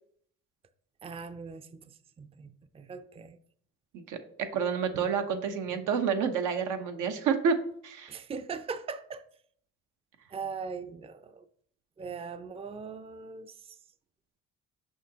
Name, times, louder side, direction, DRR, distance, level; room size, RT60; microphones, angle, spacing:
voice 1, 1.0-1.8 2.2-3.4 8.1-9.2 10.3-11.4 12.0-13.5, right 5 dB, 20° right, 0.4 m, -40 dB
voice 2, 3.9-7.6 7.8-8.2, right 6 dB, 85° right, 0.9 m, -29 dB
6.3 x 5.6 x 2.8 m
cardioid pair, 90°, 30 cm